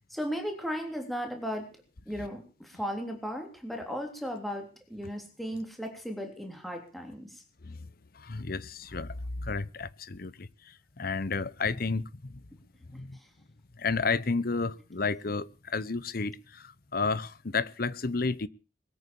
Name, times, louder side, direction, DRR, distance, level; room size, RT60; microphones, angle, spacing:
voice 1, 0.1-1.7 2.0-7.4 12.9-13.3, equal, ahead, 3.4 m, -36 dB
voice 2, 8.1-12.4 12.9-13.2 13.8-18.5, left 4 dB, 55° left, 0.9 m, -32 dB
22.0 x 9.3 x 7.1 m
head